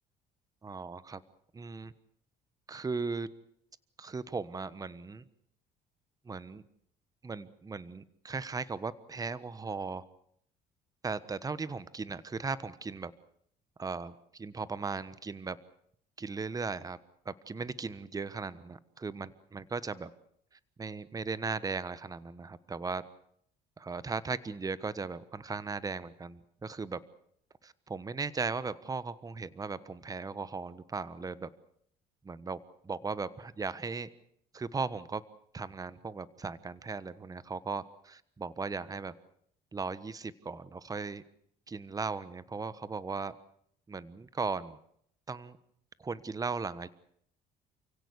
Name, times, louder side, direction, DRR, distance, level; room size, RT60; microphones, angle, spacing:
voice 1, 0.6-1.2 1.5-1.9 2.7-3.3 4.0-5.2 6.2-6.6 7.2-10.0 11.0-13.1 13.8-15.6 16.2-17.0 17.2-20.1 20.8-23.0 23.8-27.0 27.6-31.5 32.2-34.1 34.5-35.2 35.5-39.1 39.7-41.2 41.7-43.3 43.9-44.8 45.3-45.6 46.0-46.9, right 4 dB, 20° right, 16 dB, 1.2 m, -37 dB
29.5 x 16.5 x 8.2 m, 0.69 s
cardioid pair, 110°, 17 cm